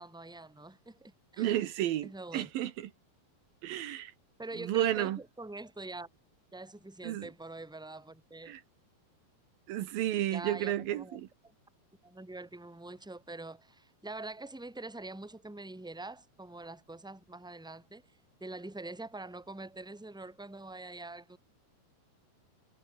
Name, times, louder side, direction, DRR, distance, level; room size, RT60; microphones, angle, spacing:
voice 1, 0.0-1.5 2.0-2.5 4.4-6.1 6.5-8.6 10.3-11.2 12.0-18.0 18.4-21.4, right 2 dB, ahead, 3.3 m, -44 dB
voice 2, 1.4-2.9 3.6-4.1 4.6-5.2 7.0-7.3 8.5-8.6 9.7-11.3, right 13 dB, 75° right, 3.0 m, -32 dB
omnidirectional pair, 4.2 m